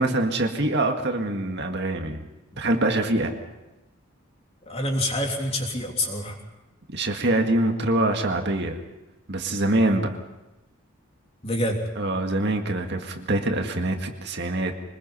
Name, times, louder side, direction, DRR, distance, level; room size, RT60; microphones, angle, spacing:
voice 1, 0.0-2.2 2.6-3.3 6.9-8.8 9.3-10.2 12.0-14.8, right 2 dB, 55° right, 4 dB, 1.9 m, -24 dB
voice 2, 4.7-6.4 11.4-11.8, left 1 dB, 30° left, 1 dB, 3.3 m, -26 dB
24.5 x 20.5 x 5.6 m, 1.0 s
head